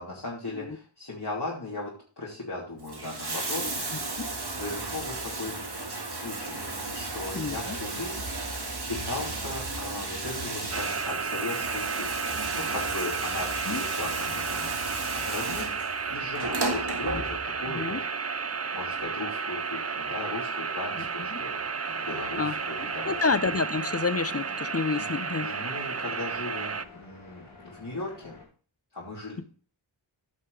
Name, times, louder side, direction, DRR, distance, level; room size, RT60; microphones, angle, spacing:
voice 1, 0.0-4.2 4.5-5.5 6.1-6.6 6.9-8.2 8.9-18.0 18.7-21.6 22.1-23.1 24.9-25.1 25.4-28.4 28.9-29.4, left 2 dB, 55° left, -6 dB, 3.1 m, -37 dB
Bathtub (filling or washing), 2.7-17.7 18.8-18.9, right 2 dB, 55° right, 1.8 m, -34 dB
voice 2, 7.3-7.8 13.7-13.8 17.1-17.2 17.6-18.0 21.3-21.4 22.4-25.5, left 4 dB, 30° left, 14 dB, 0.7 m, -29 dB
sound 1, 10.7-26.8, right 5 dB, 35° right, 0.6 m, -32 dB
sound 2, 21.8-28.4, left 4 dB, 90° left, 4.6 m, -48 dB
15.5 x 5.5 x 3.3 m, 0.40 s
wide cardioid pair, 40°, 48 cm